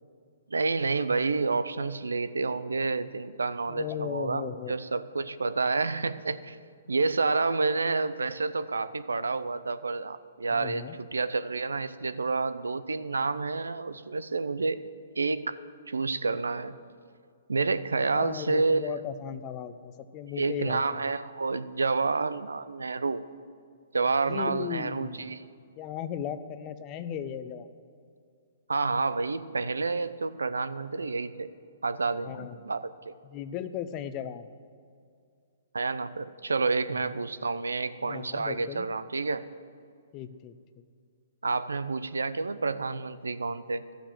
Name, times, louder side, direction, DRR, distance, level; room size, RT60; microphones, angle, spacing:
voice 1, 0.5-6.6 6.9-14.8 15.2-15.6 15.9-16.7 17.5-18.9 20.4-23.2 23.9-25.5 28.7-31.5 31.8-33.1 35.7-39.5 41.4-43.9, right 3 dB, 90° right, 14 dB, 0.5 m, -29 dB
voice 2, 3.7-4.9 10.5-11.0 18.1-21.0 24.3-25.3 25.8-27.7 32.2-32.6 33.2-34.4 36.9-37.0 38.0-38.9 40.1-40.8, left 9 dB, 30° left, 12 dB, 0.6 m, -37 dB
13.0 x 7.0 x 7.5 m, 2.3 s
hypercardioid pair, 135°, 0 cm